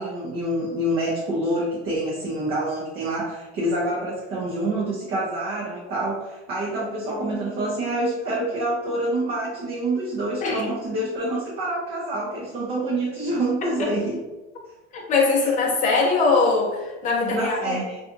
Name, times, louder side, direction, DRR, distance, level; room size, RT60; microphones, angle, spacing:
voice 1, 0.0-14.2 15.4-15.5 17.3-18.0, right 1 dB, 30° right, -5 dB, 0.5 m, -27 dB
voice 2, 14.9-17.8, left 3 dB, 25° left, -2 dB, 0.6 m, -21 dB
2.7 x 2.3 x 2.4 m, 1.1 s
supercardioid pair, 150°, 32 cm